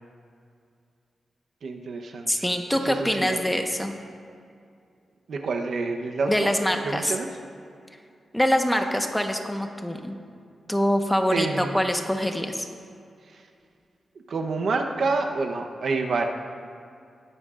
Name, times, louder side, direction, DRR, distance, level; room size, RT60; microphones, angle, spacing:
voice 1, 1.6-2.3 2.9-3.4 5.3-6.5 6.8-7.3 11.3-11.8 14.3-16.3, right 3 dB, 70° right, 3 dB, 0.9 m, -27 dB
voice 2, 2.3-3.9 6.3-7.2 8.3-10.2 10.7-12.7, equal, 5° left, 4 dB, 1.2 m, -24 dB
19.5 x 9.6 x 2.5 m, 2.4 s
cardioid pair, 60°, 0 cm